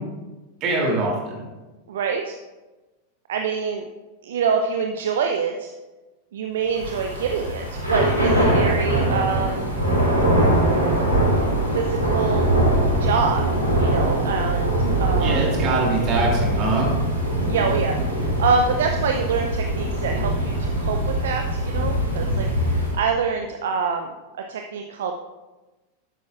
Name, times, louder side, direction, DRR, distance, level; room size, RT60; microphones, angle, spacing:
voice 1, 0.6-1.4 15.2-16.9, right 2 dB, 35° right, -2 dB, 2.8 m, -23 dB
voice 2, 1.9-2.3 3.3-3.8 4.2-5.7 6.3-9.8 11.7-12.5 13.0-13.5 13.8-14.7 15.0-15.6 17.5-24.1 24.5-25.1, right 5 dB, 60° right, 4 dB, 0.6 m, -25 dB
Thunder / Rain, 6.7-23.0, right 1 dB, 85° right, 2.8 m, -22 dB
11.0 x 8.3 x 2.4 m, 1.1 s
figure-of-eight pair, 90°, 0 cm